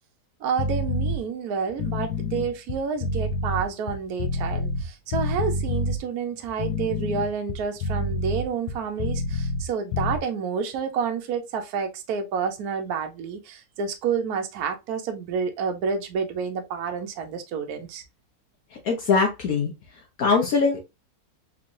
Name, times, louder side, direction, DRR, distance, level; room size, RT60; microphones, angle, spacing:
voice 1, 0.4-18.0, right 6 dB, 70° right, 1.2 m, -29 dB
sound 1, 0.6-1.2 1.7-4.9 5.1-6.0 6.5-9.7 9.9-10.2, left 2 dB, 90° left, 1.2 m, -27 dB
voice 2, 18.8-19.7 20.2-20.8, left 4 dB, 65° left, 1.2 m, -21 dB
3.7 x 3.1 x 2.5 m
omnidirectional pair, 1.7 m